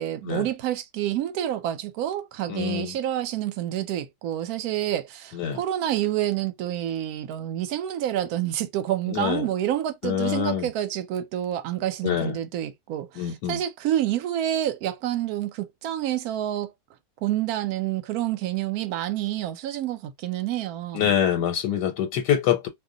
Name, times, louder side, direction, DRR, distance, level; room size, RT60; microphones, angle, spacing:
voice 1, 0.0-16.7 17.2-21.1, right 12 dB, 70° right, 1.0 m, -28 dB
voice 2, 2.5-2.9 5.3-5.6 9.1-9.5 10.0-10.7 12.0-12.3 13.2-13.6 20.9-22.7, left 9 dB, 90° left, 1.2 m, -25 dB
2.7 x 2.1 x 3.7 m
omnidirectional pair, 1.8 m